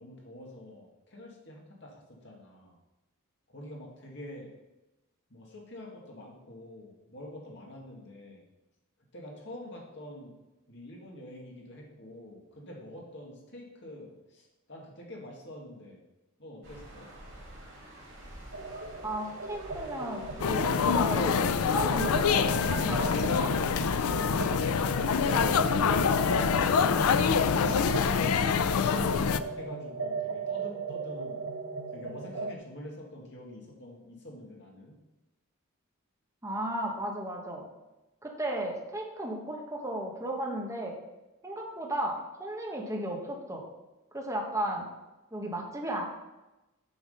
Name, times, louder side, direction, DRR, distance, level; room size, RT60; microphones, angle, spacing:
voice 1, 0.0-2.8 3.5-4.5 5.3-8.4 9.1-10.4 10.7-16.0 16.4-17.1 28.4-31.5 31.9-35.0, left 1 dB, 55° left, -2 dB, 2.0 m, -46 dB
sound 1, 16.6-27.8, right 1 dB, 60° right, 2.5 m, -48 dB
sound 2, 18.5-32.6, right 3 dB, 85° right, 0.9 m, -38 dB
voice 2, 19.0-23.5 36.4-37.6 38.2-41.0 41.4-43.6 44.1-44.9 45.3-46.1, right 1 dB, 15° right, -1 dB, 1.2 m, -35 dB
sound 3, 20.4-29.4, left 6 dB, 85° left, 0.4 m, -25 dB
7.2 x 5.9 x 5.5 m, 1.0 s
head